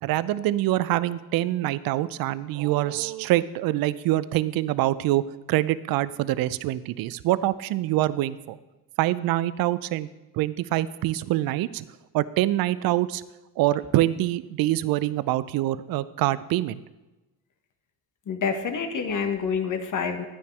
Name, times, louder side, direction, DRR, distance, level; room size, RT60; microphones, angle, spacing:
voice 1, 0.0-5.2 5.5-8.6 9.0-10.1 10.3-11.8 12.1-13.2 13.6-16.8, right 15 dB, 50° right, 17 dB, 0.6 m, -25 dB
voice 2, 18.3-20.2, left 6 dB, 40° left, 7 dB, 1.6 m, -27 dB
12.0 x 9.3 x 3.3 m, 1.1 s
hypercardioid pair, 60°, 45 cm